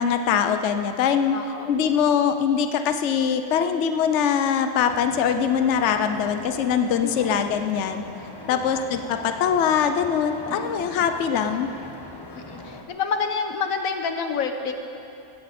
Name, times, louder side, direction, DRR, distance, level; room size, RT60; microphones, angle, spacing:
voice 1, 0.0-1.4 1.7-8.0 8.5-11.7, left 7 dB, 65° left, 8 dB, 0.9 m, -22 dB
voice 2, 1.3-1.7 7.0-7.4 8.5-8.8 10.5-10.6 12.3-14.7, left 5 dB, 90° left, 6 dB, 1.4 m, -28 dB
sound 1, 4.9-12.8, left 2 dB, 20° left, 0.9 m, -41 dB
17.5 x 15.0 x 4.2 m, 2.7 s
omnidirectional pair, 1.4 m